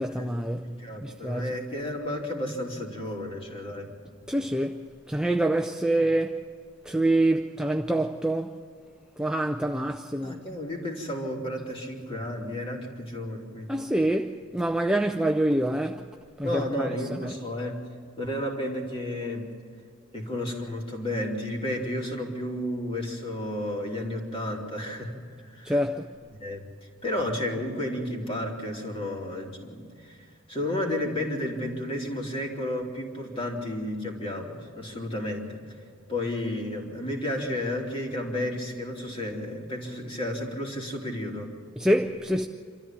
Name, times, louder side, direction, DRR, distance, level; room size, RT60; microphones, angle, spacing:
voice 1, 0.0-0.8 1.0-1.5 4.3-6.4 6.8-8.6 9.2-10.4 13.7-16.0 16.4-17.3 25.6-26.1 41.8-42.5, right 1 dB, 5° right, 0.5 m, -26 dB
voice 2, 0.6-3.9 10.2-13.7 16.4-17.8 18.2-19.5 20.1-25.2 25.4-25.7 26.4-26.6 27.0-30.2 30.5-35.6 36.1-41.5, left 1 dB, 25° left, 3.0 m, -32 dB
27.0 x 13.5 x 7.4 m
head